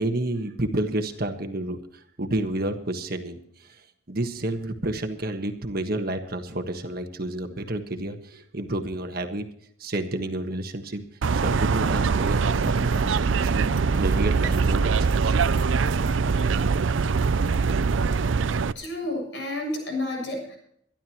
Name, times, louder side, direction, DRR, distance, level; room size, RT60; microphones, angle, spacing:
voice 1, 0.0-1.8 2.2-3.7 4.1-9.5 9.8-11.0 11.3-15.4, right 1 dB, 50° right, 6 dB, 1.5 m, -30 dB
sound 1, 11.2-18.7, right 5 dB, 70° right, 0.5 m, -23 dB
voice 2, 18.8-20.6, left 1 dB, 65° left, 1 dB, 7.1 m, -30 dB
23.5 x 12.0 x 3.0 m, 0.67 s
head